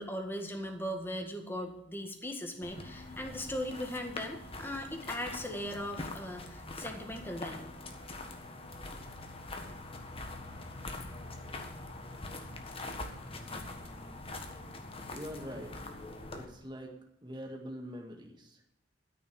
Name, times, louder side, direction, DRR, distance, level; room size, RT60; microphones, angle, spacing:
voice 1, 0.0-7.7, equal, 10° left, 4 dB, 1.8 m, -39 dB
sound 1, 2.6-16.4, left 2 dB, 30° left, 1.5 m, -43 dB
voice 2, 15.1-15.9 16.3-18.6, equal, 25° right, 1 dB, 1.7 m, -44 dB
13.0 x 6.7 x 7.0 m, 0.78 s
head